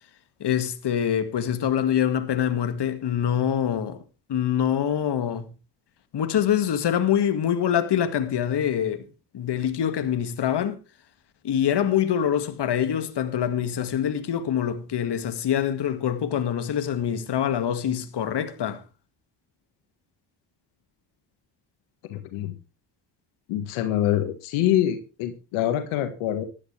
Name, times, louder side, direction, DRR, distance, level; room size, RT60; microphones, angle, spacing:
voice 1, 0.4-4.0 4.3-5.5 6.1-9.0 9.3-10.8 11.4-18.8, left 9 dB, 55° left, 2.0 m, -25 dB
voice 2, 22.1-22.5 23.5-26.4, left 12 dB, 85° left, 1.7 m, -25 dB
15.0 x 12.0 x 3.3 m
supercardioid pair, 65°, 48 cm